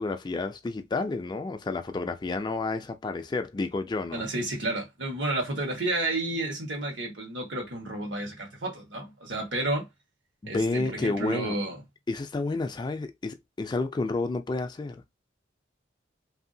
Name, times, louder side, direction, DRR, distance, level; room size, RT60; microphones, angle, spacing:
voice 1, 0.0-4.3 9.6-9.7 10.4-11.6 12.1-15.0, left 3 dB, 25° left, 0.3 m, -30 dB
voice 2, 4.1-9.9 10.5-11.8, right 2 dB, 75° right, 1.3 m, -31 dB
2.8 x 2.7 x 2.6 m
head